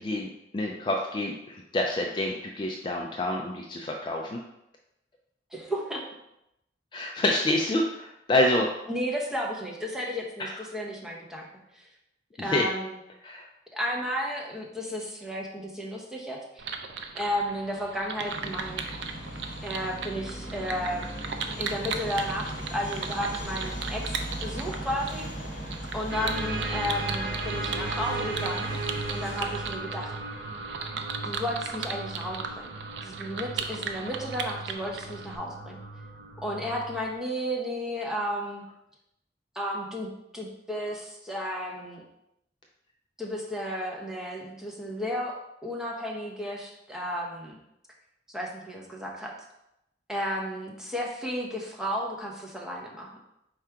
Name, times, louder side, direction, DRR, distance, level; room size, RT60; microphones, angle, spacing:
voice 1, 0.0-4.4 6.9-8.7 10.4-10.5 12.4-12.7 13.2-13.5, left 1 dB, 25° left, 0 dB, 0.3 m, -27 dB
voice 2, 5.5-6.0 8.9-11.5 11.7-11.9 12.4-13.0 13.7-16.6 17.1-18.9 19.6-21.1 21.6-25.3 25.9-28.8 29.1-30.1 31.2-32.8 33.0-35.8 36.4-38.6 39.5-42.0 43.2-45.3 45.6-47.6 48.3-49.4 50.1-53.2, equal, 5° right, -2 dB, 0.7 m, -33 dB
sound 1, 16.6-35.4, right 6 dB, 75° right, 0.4 m, -37 dB
sound 2, 18.2-29.8, equal, 45° left, 1.0 m, -38 dB
sound 3, 26.1-37.1, right 2 dB, 55° right, 0.9 m, -36 dB
4.6 x 2.4 x 4.4 m, 0.85 s
head